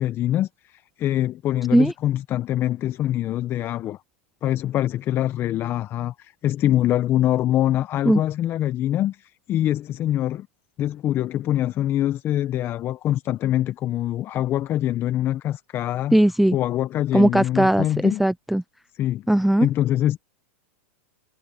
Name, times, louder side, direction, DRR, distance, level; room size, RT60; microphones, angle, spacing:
voice 1, 0.0-4.0 4.4-10.5 10.8-16.2 16.5-18.2 18.9-19.3 19.6-20.2, left 12 dB, 30° left, 0.9 m, -24 dB
voice 2, 16.1-16.6 17.1-18.6 19.3-19.7, right 1 dB, ahead, 0.3 m, -18 dB
hypercardioid pair, 120°, 7 cm